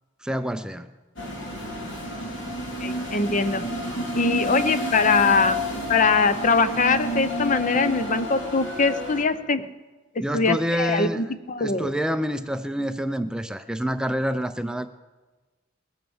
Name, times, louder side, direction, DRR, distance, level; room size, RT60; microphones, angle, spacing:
voice 1, 0.2-0.9 10.2-11.2 11.6-14.9, equal, 5° right, 9 dB, 0.4 m, -27 dB
sound 1, 1.2-9.2, equal, 65° left, 3.0 m, -30 dB
voice 2, 2.8-3.6 4.2-5.6 5.9-9.7 10.3-12.0, left 4 dB, 40° left, 12 dB, 0.7 m, -22 dB
20.0 x 8.8 x 7.1 m, 1.2 s
head